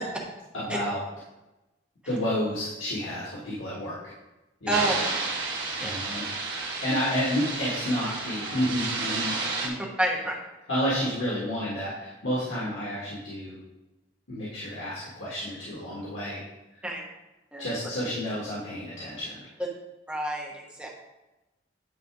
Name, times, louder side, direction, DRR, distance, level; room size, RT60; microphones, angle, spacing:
voice 1, 0.5-1.0 2.1-4.0 4.6-4.9 5.8-6.3 6.6-9.7 10.7-13.6 14.3-16.4 16.7-16.9 17.6-19.5, equal, 90° left, -7 dB, 1.8 m, -30 dB
sound 1, 4.7-9.7, right 3 dB, 60° right, 1.7 m, -31 dB
voice 2, 10.0-10.4 16.8-17.0 17.5-17.7 20.1-20.9, right 1 dB, 5° right, -2 dB, 1.0 m, -28 dB
9.3 x 3.3 x 4.9 m, 1.0 s
head